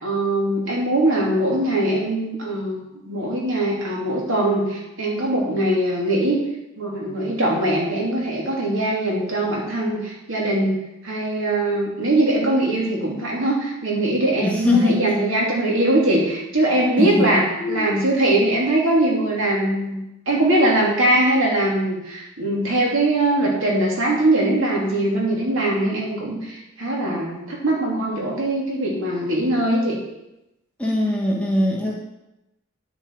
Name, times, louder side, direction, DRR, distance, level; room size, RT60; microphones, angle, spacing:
voice 1, 0.0-6.4 6.8-10.8 11.0-20.0 20.3-30.0, right 1 dB, 70° right, -3 dB, 3.0 m, -21 dB
voice 2, 14.4-15.0 17.0-17.3 17.6-17.9 30.8-32.0, left 2 dB, 5° left, -3 dB, 1.5 m, -21 dB
10.5 x 6.7 x 4.8 m, 0.92 s
head